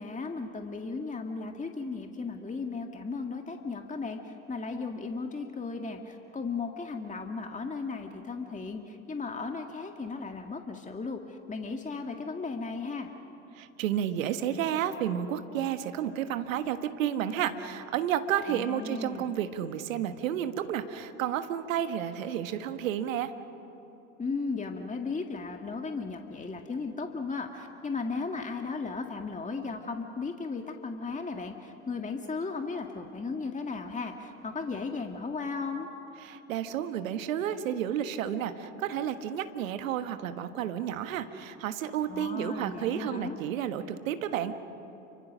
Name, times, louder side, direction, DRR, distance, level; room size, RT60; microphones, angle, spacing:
voice 1, 0.0-13.1 18.5-19.3 24.2-35.9 42.1-43.4, left 4 dB, 20° left, 4 dB, 1.9 m, -36 dB
voice 2, 13.6-23.3 36.2-44.5, right 10 dB, 75° right, 10 dB, 1.4 m, -31 dB
29.5 x 24.5 x 6.3 m, 2.9 s
figure-of-eight pair, 60°, 40 cm